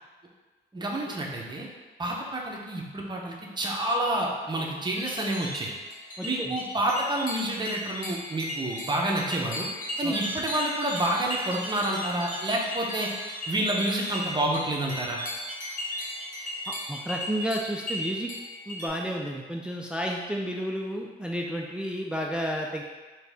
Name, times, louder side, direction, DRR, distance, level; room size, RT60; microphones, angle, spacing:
voice 1, 0.7-1.7 2.0-5.7 6.2-9.7 10.0-13.1 13.5-15.2, right 1 dB, 20° right, -1 dB, 0.8 m, -29 dB
sound 1, 4.9-18.9, left 1 dB, 40° left, 1.1 m, -36 dB
voice 2, 6.2-6.6 10.0-10.2 16.7-18.3 18.7-22.8, equal, 5° right, 0 dB, 0.3 m, -31 dB
4.0 x 2.8 x 3.5 m, 1.3 s
cardioid pair, 90°, 20 cm